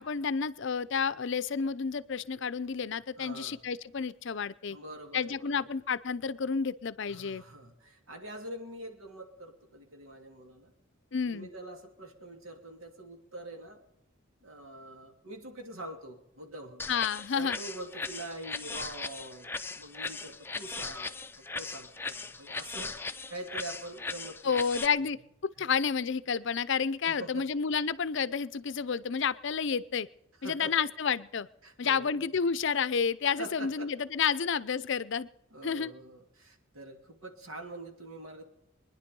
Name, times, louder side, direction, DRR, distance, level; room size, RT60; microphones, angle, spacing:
voice 1, 0.0-4.8 5.1-7.4 11.1-11.5 16.9-17.6 24.4-25.2 25.4-30.1 30.4-31.5 31.8-35.3 35.6-35.9, left 6 dB, 60° left, 16 dB, 0.5 m, -30 dB
voice 2, 3.2-3.6 4.7-5.7 7.1-10.7 11.3-13.8 14.4-16.8 17.3-24.7 25.6-25.7 27.0-27.5 30.4-30.8 31.6-32.3 33.4-33.9 34.2-34.4 35.5-38.4, right 1 dB, 85° right, 4 dB, 2.8 m, -44 dB
sound 1, 16.8-24.9, left 3 dB, 10° left, 0.5 m, -38 dB
24.0 x 10.5 x 5.3 m, 0.82 s
head